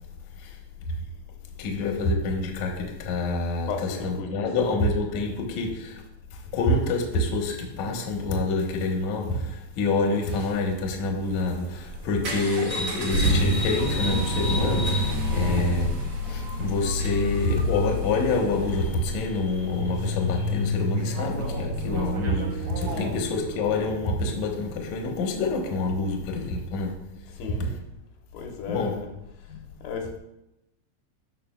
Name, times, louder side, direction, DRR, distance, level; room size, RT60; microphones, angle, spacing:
voice 1, 1.6-6.0 6.3-27.0 28.7-29.0 29.5-29.6, left 3 dB, 65° left, 2.0 m, -27 dB
voice 2, 3.7-4.8 22.9-23.3 27.4-27.8 28.3-29.1 29.8-30.2, left 5 dB, 90° left, 3.0 m, -35 dB
sound 1, 10.0-23.8, right 1 dB, 60° right, 1.5 m, -30 dB
sound 2, 12.7-23.3, left 3 dB, 25° left, 1.2 m, -33 dB
sound 3, 21.9-26.2, right 12 dB, 80° right, 2.1 m, -40 dB
14.5 x 5.1 x 2.3 m
omnidirectional pair, 4.4 m